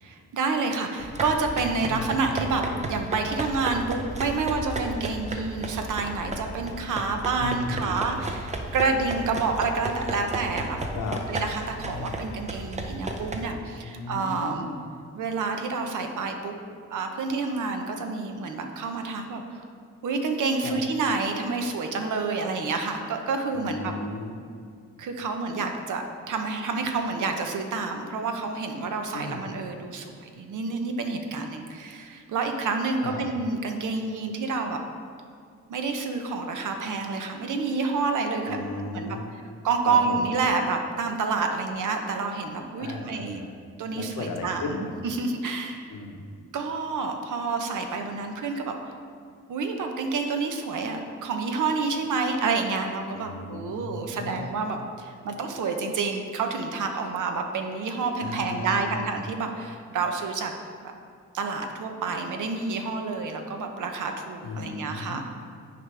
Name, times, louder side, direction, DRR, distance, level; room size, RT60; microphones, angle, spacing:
voice 1, 0.0-10.8 11.3-14.7 15.1-16.6 16.9-19.6 20.0-23.9 25.0-34.8 35.7-38.6 38.9-39.2 39.6-43.4 43.8-45.9 46.5-48.8 49.5-60.5 60.8-60.9 61.3-65.2, right 4 dB, 70° right, 5 dB, 0.8 m, -28 dB
sound 1, 1.0-13.4, right 2 dB, 20° right, 0.5 m, -34 dB
voice 2, 1.8-2.2 7.4-8.0 10.9-11.2 11.8-12.1 13.8-14.8 20.6-20.8 23.5-24.3 29.1-29.5 33.0-33.2 38.4-39.2 39.9-40.3 42.8-43.5 43.9-44.9 45.9-46.3 53.1-54.6 58.2-59.0 64.4-65.2, left 3 dB, 85° left, 3 dB, 0.9 m, -35 dB
9.4 x 5.1 x 3.3 m, 2.2 s
wide cardioid pair, 150°, 31 cm